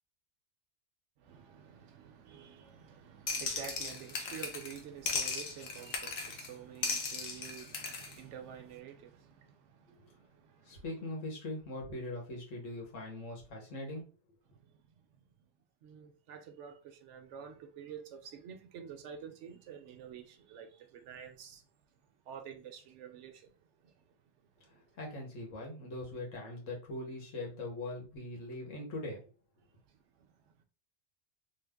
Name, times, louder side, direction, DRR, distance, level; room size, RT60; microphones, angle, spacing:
voice 1, 1.2-10.8 14.5-14.8 15.2-15.3 15.8-21.7 22.3-23.5 23.8-23.9 24.7-24.9 29.9-30.6, right 8 dB, 70° right, 0.9 m, -49 dB
sound 1, 3.3-4.8 5.1-6.5 6.8-8.1, left 4 dB, 60° left, 0.8 m, -37 dB
voice 2, 10.7-14.0 25.0-29.2, left 2 dB, 80° left, 1.5 m, -41 dB
3.3 x 2.0 x 3.4 m
omnidirectional pair, 1.3 m